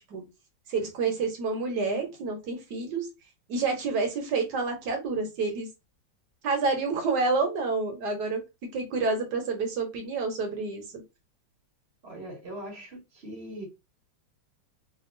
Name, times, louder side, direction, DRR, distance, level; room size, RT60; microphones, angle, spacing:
voice 1, 0.7-3.1 3.5-5.7 6.4-8.4 8.7-10.8, right 4 dB, 60° right, 1.4 m, -28 dB
voice 2, 12.0-13.7, right 1 dB, 40° right, 1.1 m, -41 dB
3.5 x 2.5 x 2.5 m
omnidirectional pair, 2.2 m